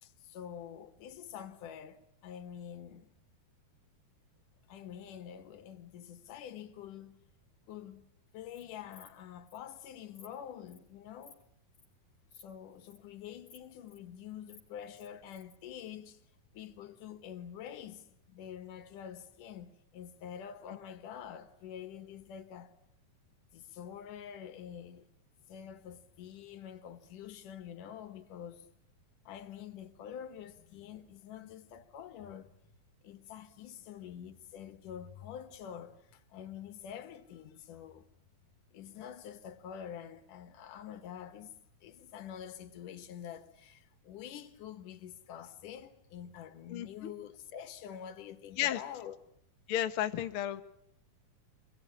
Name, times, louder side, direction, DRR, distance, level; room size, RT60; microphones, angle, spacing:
voice 1, 0.0-3.1 4.7-7.2 7.7-8.1 8.3-11.4 12.3-16.2 16.5-22.7 23.5-25.1 25.5-28.7 29.3-32.8 33.0-38.1 38.7-41.5 41.8-49.2, left 9 dB, 65° left, 2.8 m, -47 dB
Insect, 8.3-8.6 8.9-9.1 9.5-9.6 9.9-10.3 10.7-10.9 11.2-11.4 11.7-11.9 12.3-12.4 12.7-13.0 13.5-14.0 14.3-15.6, left 4 dB, 30° left, 4.5 m, -57 dB
voice 2, 46.7-47.1 48.6-48.8 49.7-50.6, left 12 dB, 80° left, 1.2 m, -32 dB
26.0 x 21.0 x 9.9 m
omnidirectional pair, 4.4 m